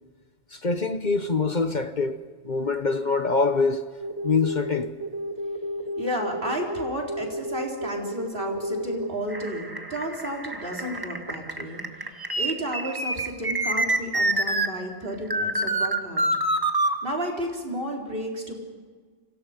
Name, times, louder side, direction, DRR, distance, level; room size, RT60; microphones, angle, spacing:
voice 1, 0.5-2.2 2.4-3.8 4.2-4.9, left 4 dB, 45° left, 1.1 m, -24 dB
sound 1, 4.0-14.7 15.3-17.0, right 1 dB, 20° right, 1.5 m, -28 dB
voice 2, 6.0-11.8 12.4-16.3 17.0-18.6, equal, 55° right, 4.4 m, -32 dB
29.5 x 25.0 x 5.3 m
omnidirectional pair, 1.1 m